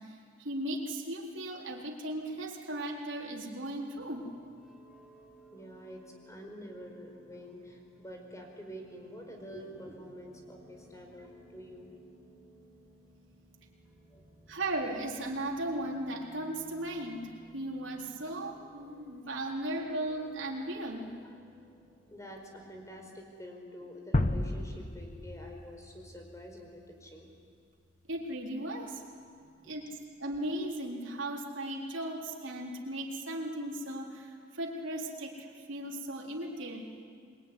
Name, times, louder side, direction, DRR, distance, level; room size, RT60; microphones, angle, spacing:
voice 1, 0.0-4.3 14.5-21.1 28.1-29.0 29.6-36.9, right 1 dB, 65° right, -1 dB, 4.2 m, -37 dB
sound 1, 3.9-23.1, right 1 dB, 5° right, 3.7 m, -59 dB
voice 2, 5.5-11.9 14.1-14.3 21.2-21.3 22.1-27.3 29.4-29.8, equal, 15° left, 2 dB, 4.8 m, -47 dB
sound 2, 24.1-27.1, left 1 dB, 40° left, 1.1 m, -33 dB
26.5 x 22.5 x 9.9 m, 2.2 s
head